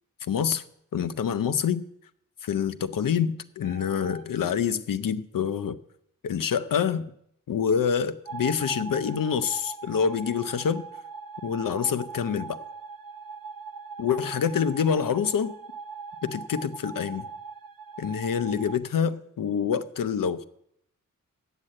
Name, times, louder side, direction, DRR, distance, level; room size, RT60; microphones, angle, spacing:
voice 1, 0.3-0.6 0.9-1.8 2.4-5.8 6.2-7.1 7.5-10.8 11.4-12.6 14.0-15.5 16.2-17.3 18.0-20.4, left 7 dB, 85° left, 0.7 m, -26 dB
sound 1, 3.6-4.3 8.3-18.8, right 5 dB, 90° right, 0.6 m, -41 dB
8.3 x 7.5 x 8.7 m
wide cardioid pair, 100°, 33 cm